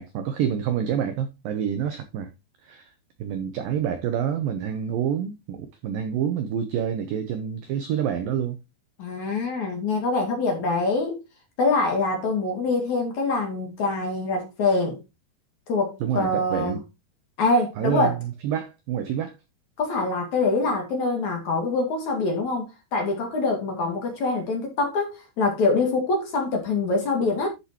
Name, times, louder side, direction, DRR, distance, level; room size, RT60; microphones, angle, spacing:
voice 1, 0.0-2.3 2.6-2.9 3.2-8.6 16.0-16.8 17.8-19.4, right 9 dB, 80° right, 2.0 m, -27 dB
voice 2, 9.0-11.2 11.6-15.0 15.7-16.8 17.4-18.2 19.8-27.5, left 3 dB, 50° left, 3.0 m, -24 dB
11.5 x 6.8 x 3.0 m
omnidirectional pair, 5.1 m